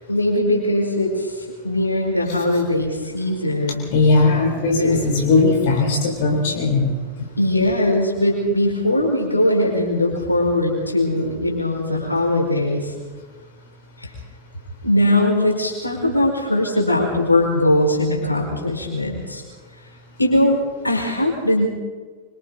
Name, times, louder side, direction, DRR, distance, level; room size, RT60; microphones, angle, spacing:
voice 1, 0.1-3.9 4.8-5.0 7.4-12.9 14.0-14.1 14.8-19.4 20.2-21.7, left 1 dB, 85° left, 0 dB, 4.9 m, -20 dB
voice 2, 3.9-7.0, left 3 dB, 50° left, 1 dB, 3.4 m, -18 dB
26.0 x 25.0 x 4.0 m, 1.5 s
figure-of-eight pair, 90°, 0 cm